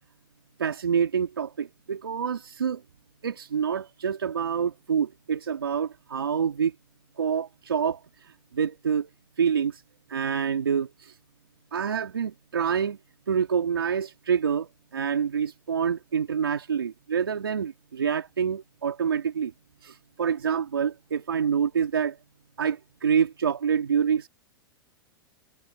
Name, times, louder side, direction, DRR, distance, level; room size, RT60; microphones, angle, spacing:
voice 1, 0.6-2.8 3.2-6.7 7.2-8.0 8.5-9.1 9.4-9.8 10.1-11.1 11.7-13.0 13.3-19.5 19.8-22.2 22.6-24.3, right 7 dB, 85° right, 3.7 m, -27 dB
hypercardioid pair, 105°, 12 cm